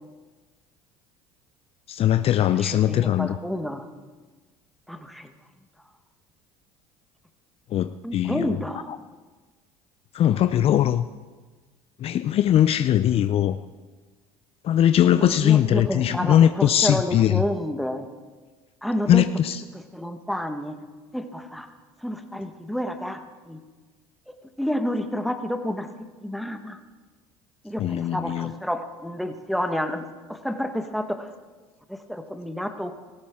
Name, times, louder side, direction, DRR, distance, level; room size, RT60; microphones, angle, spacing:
voice 1, 1.9-3.4 7.7-8.5 10.1-11.1 12.0-13.6 14.6-17.4 19.1-19.6 27.8-28.5, left 11 dB, 45° left, 12 dB, 0.5 m, -20 dB
voice 2, 2.6-3.9 4.9-5.3 8.0-8.9 15.2-18.1 18.8-19.3 19.7-20.8 21.1-21.7 22.0-23.2 23.5-23.6 24.3-25.9 26.2-26.8 27.6-31.3 31.9-32.9, equal, ahead, 7 dB, 1.3 m, -30 dB
17.5 x 14.5 x 3.7 m, 1.3 s
supercardioid pair, 85°, 13 cm